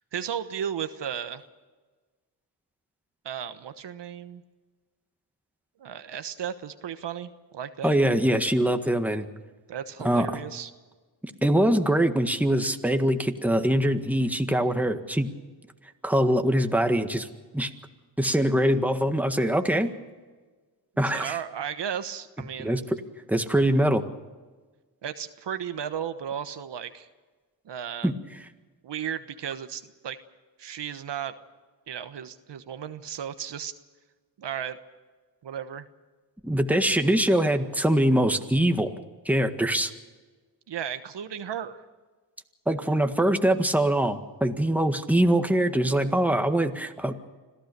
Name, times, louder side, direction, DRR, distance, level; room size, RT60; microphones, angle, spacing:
voice 1, 0.1-1.4 3.2-4.4 5.8-7.9 9.7-10.7 21.1-22.8 25.0-27.1 27.6-28.1 28.8-30.2 30.6-31.3 31.9-33.7 34.4-34.8 35.4-35.9 40.7-41.8, right 9 dB, 70° right, 10 dB, 1.3 m, -34 dB
voice 2, 7.8-9.2 10.0-10.4 11.4-15.3 16.0-17.3 17.5-17.7 18.2-19.9 21.0-21.4 22.6-22.8 23.3-24.0 28.0-28.1 36.4-38.9 39.2-39.9 42.7-47.1, right 1 dB, 5° right, 6 dB, 1.7 m, -23 dB
26.0 x 15.5 x 6.8 m, 1.4 s
cardioid pair, 70°, 44 cm